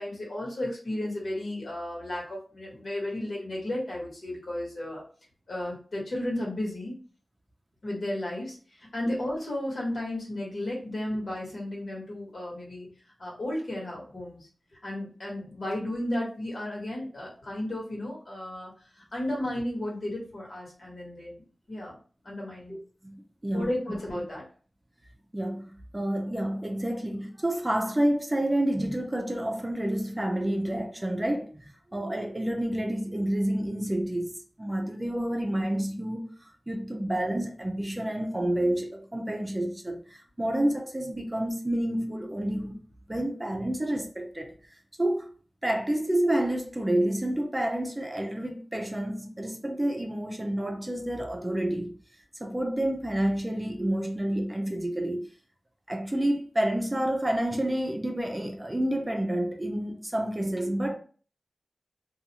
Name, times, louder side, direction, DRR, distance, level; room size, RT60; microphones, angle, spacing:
voice 1, 0.0-5.0 5.5-6.9 7.8-12.9 13.2-14.5 14.8-21.9 22.2-22.8 23.5-24.4, left 1 dB, 70° left, 1.3 m, -34 dB
voice 2, 22.7-24.2 25.3-36.3 36.7-42.8 43.1-44.5 45.0-45.3 45.6-52.0 52.4-55.3 55.9-60.9, right 1 dB, 20° right, 0.5 m, -29 dB
2.4 x 2.4 x 2.8 m
wide cardioid pair, 80°, 0 cm